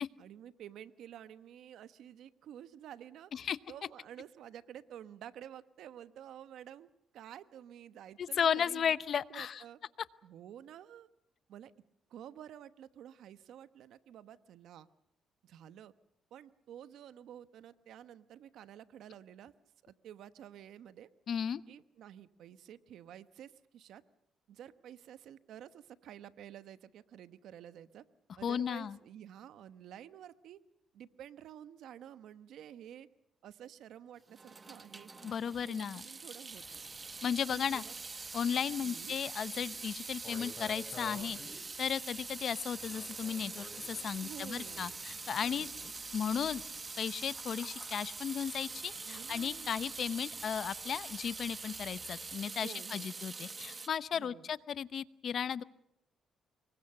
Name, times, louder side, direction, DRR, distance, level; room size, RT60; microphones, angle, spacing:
voice 1, 0.2-8.9 9.3-9.8 10.2-11.1 11.5-11.7 12.1-14.9 15.4-15.9 16.3-19.5 19.8-21.1 21.7-24.0 24.5-28.1 28.4-30.6 30.9-33.1 33.4-35.1 35.4-36.8 37.5-38.0 38.8-39.2 44.2-44.9 45.4-45.7 49.0-49.7 52.6-53.1 54.1-54.5, right 10 dB, 75° right, 13 dB, 1.1 m, -51 dB
voice 2, 8.2-9.6 21.3-21.6 28.4-29.0 35.2-36.0 37.2-37.8 38.3-45.7 46.1-46.6 47.0-55.6, left 8 dB, 55° left, 16 dB, 0.8 m, -35 dB
Water tap faucet / Sink (filling or washing) / Drip, 34.3-53.9, right 4 dB, 30° right, 1.1 m, -44 dB
sound 1, 36.5-52.4, left 3 dB, 40° left, 6.0 m, -55 dB
25.5 x 22.0 x 6.7 m, 0.78 s
cardioid pair, 90°, 0 cm